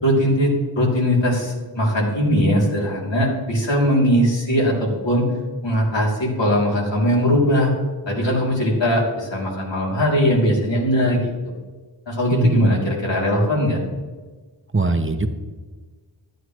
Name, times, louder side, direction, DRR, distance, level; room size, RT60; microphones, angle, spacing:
voice 1, 0.0-5.3 5.6-7.7 8.1-11.3 12.1-13.8, equal, 75° left, -3 dB, 3.1 m, -20 dB
voice 2, 12.3-12.7 14.7-15.3, right 3 dB, 30° right, 6 dB, 0.9 m, -19 dB
13.5 x 9.3 x 3.1 m, 1.4 s
wide cardioid pair, 50°, 45 cm